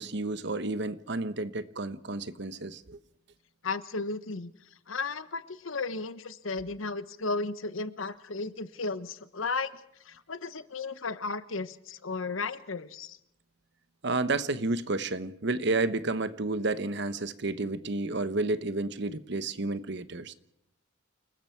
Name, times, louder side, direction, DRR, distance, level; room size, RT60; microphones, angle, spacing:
voice 1, 0.0-3.0 14.0-20.3, right 2 dB, 60° right, 1.0 m, -31 dB
voice 2, 3.6-4.5 4.9-9.7 10.0-13.2, left 3 dB, 85° left, 1.1 m, -34 dB
29.0 x 19.5 x 4.6 m
head